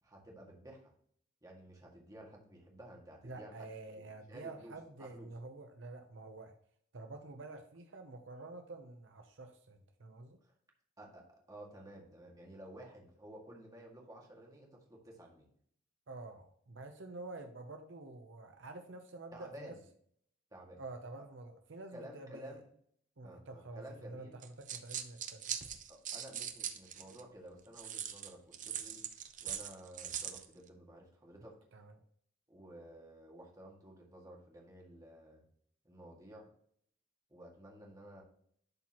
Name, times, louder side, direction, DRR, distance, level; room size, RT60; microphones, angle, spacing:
voice 1, 0.0-0.8 1.4-5.3 10.4-10.5 11.0-15.5 19.3-19.8 20.5-20.8 21.2-21.3 21.9-22.6 23.2-24.4 25.9-29.0 29.4-31.7 32.5-35.4 35.8-36.5 37.3-38.2, right 1 dB, 20° right, -1 dB, 1.9 m, -53 dB
voice 2, 3.2-6.5 6.9-10.4 16.1-19.8 20.8-22.6 23.2-25.5 31.7-32.0, right 2 dB, 70° right, 5 dB, 0.8 m, -48 dB
sound 1, 24.4-27.2 27.8-30.5, right 9 dB, 40° right, 0.7 m, -41 dB
11.5 x 4.4 x 2.9 m, 0.62 s
head